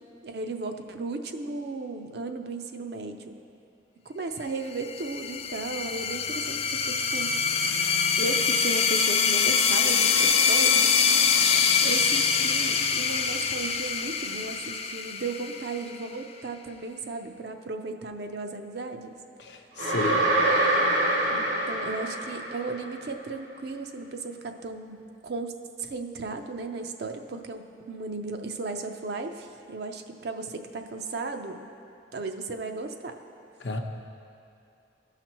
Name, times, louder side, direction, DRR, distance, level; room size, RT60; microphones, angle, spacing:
voice 1, 0.2-3.4 4.1-7.3 8.2-11.0 11.4-19.2 21.3-25.5 25.8-31.7 32.1-33.2, right 3 dB, 60° right, 6 dB, 0.5 m, -35 dB
sound 1, 4.8-16.1, left 6 dB, 30° left, 0.3 m, -24 dB
voice 2, 11.4-12.0 19.4-20.2 33.6-33.8, left 4 dB, 70° left, 4 dB, 0.7 m, -32 dB
sound 2, 19.8-22.9, right 1 dB, 80° right, 1.5 m, -25 dB
15.0 x 5.8 x 3.0 m, 2.6 s
head